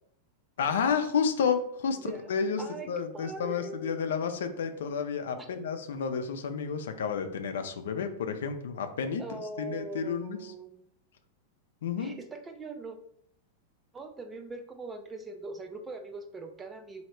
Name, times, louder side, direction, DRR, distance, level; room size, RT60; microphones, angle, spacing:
voice 1, 0.6-2.0 2.3-10.4 11.8-12.1, left 6 dB, 85° left, 7 dB, 0.5 m, -31 dB
voice 2, 2.0-2.3 2.6-3.9 5.4-5.5 9.2-10.8 12.0-13.0 13.9-17.0, right 3 dB, 15° right, 5 dB, 0.4 m, -41 dB
3.1 x 2.8 x 4.3 m, 0.66 s
supercardioid pair, 130°, 0 cm